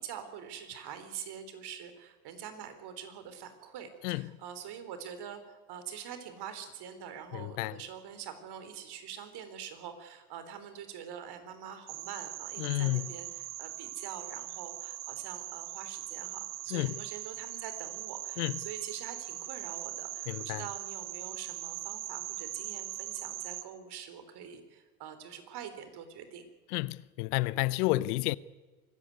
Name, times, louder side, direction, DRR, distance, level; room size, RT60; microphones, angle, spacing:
voice 1, 0.0-26.5, right 8 dB, 55° right, 4.1 m, -45 dB
voice 2, 4.0-4.4 7.3-7.8 12.6-13.2 16.7-17.0 18.4-18.6 20.3-20.6 26.7-28.4, left 19 dB, 70° left, 0.8 m, -31 dB
sound 1, 11.9-23.6, right 16 dB, 75° right, 1.4 m, -41 dB
24.5 x 14.5 x 9.5 m
hypercardioid pair, 80°, 47 cm